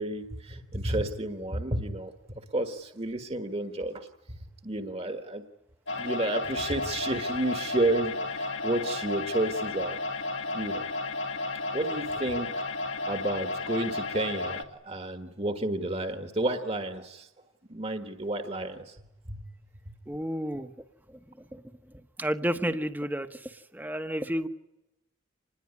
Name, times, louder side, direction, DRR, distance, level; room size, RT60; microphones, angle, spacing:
voice 1, 0.0-5.4 5.9-10.0 10.5-10.8 11.7-12.5 13.1-17.3 17.7-18.9 19.3-19.4 19.9-20.0 20.6-20.7, right 1 dB, 30° right, 7 dB, 1.5 m, -31 dB
sound 1, 5.9-14.6, left 2 dB, 75° left, 2.0 m, -33 dB
voice 2, 20.1-20.7 21.5-21.6 22.2-23.3 23.7-24.5, equal, 10° right, 9 dB, 1.1 m, -30 dB
26.5 x 20.5 x 9.7 m, 0.95 s
head